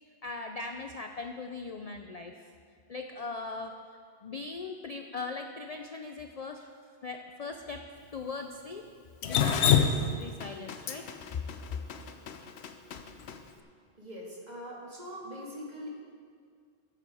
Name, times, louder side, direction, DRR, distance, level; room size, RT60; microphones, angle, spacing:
voice 1, 0.2-2.5 2.9-3.7 4.2-6.7 7.0-7.8 8.1-8.9 9.2-11.1, left 3 dB, 45° left, 4 dB, 0.5 m, -40 dB
Drip, 9.2-13.4, left 7 dB, 75° left, 0.9 m, -27 dB
voice 2, 14.0-15.9, equal, 40° right, -3 dB, 2.0 m, -42 dB
13.5 x 7.9 x 4.8 m, 2.1 s
omnidirectional pair, 1.1 m